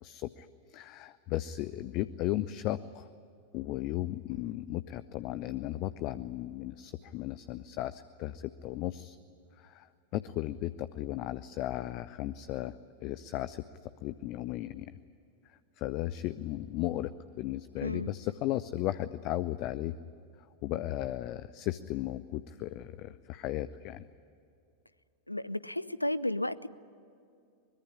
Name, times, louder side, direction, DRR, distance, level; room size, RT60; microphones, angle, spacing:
voice 1, 0.0-3.1 3.5-9.2 9.6-9.9 10.1-12.7 13.0-13.6 14.0-15.0 15.8-17.1 17.4-19.9 20.6-24.0, left 14 dB, 40° left, 14 dB, 0.7 m, -35 dB
voice 2, 17.8-18.1 25.3-26.7, left 1 dB, 85° left, 17 dB, 0.7 m, -33 dB
24.0 x 21.5 x 9.9 m, 2.5 s
figure-of-eight pair, 90°, 0 cm